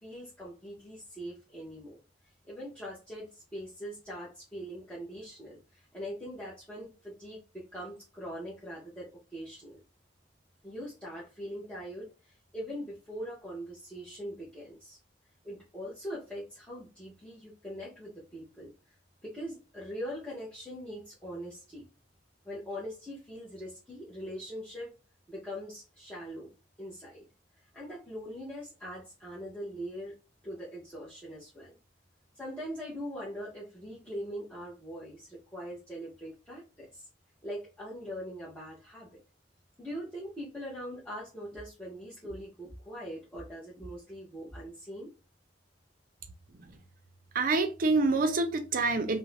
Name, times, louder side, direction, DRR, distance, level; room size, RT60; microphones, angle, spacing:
voice 1, 0.0-2.0 2.4-9.8 10.6-15.0 15.4-18.7 19.2-21.9 22.4-24.9 25.3-27.2 27.7-30.1 30.4-31.8 32.3-37.1 37.4-39.2 39.8-45.1, equal, 5° left, 0.7 m, -42 dB
voice 2, 47.3-49.2, right 3 dB, 50° right, 0.5 m, -27 dB
2.5 x 2.1 x 3.1 m
head